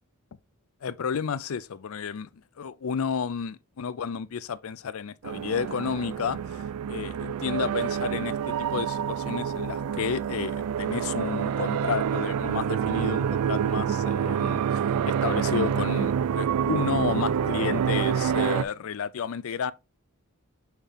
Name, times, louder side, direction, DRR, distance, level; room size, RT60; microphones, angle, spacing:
voice 1, 0.8-2.3 2.6-6.6 6.9-19.7, left 6 dB, 65° left, 0.4 m, -31 dB
sound 1, 5.2-18.6, right 8 dB, 85° right, 0.3 m, -27 dB
sound 2, 9.1-14.2, right 3 dB, 30° right, 3.8 m, -51 dB
7.0 x 3.7 x 3.7 m
head